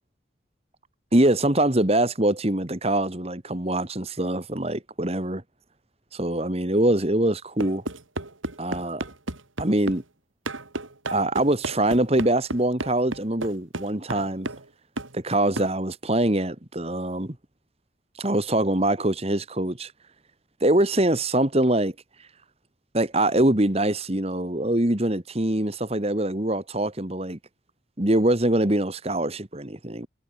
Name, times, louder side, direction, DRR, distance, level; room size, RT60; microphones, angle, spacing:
voice 1, 1.1-5.4 6.1-7.8 8.6-9.0 9.6-10.0 11.1-14.5 15.1-17.4 18.2-19.9 20.6-21.9 22.9-27.4 28.0-30.1, right 1 dB, 30° right, 1.8 m, -23 dB
sound 1, 7.6-10.0 10.4-14.7 15.0-15.1 15.6-15.7, right 2 dB, 90° right, 3.1 m, -33 dB
head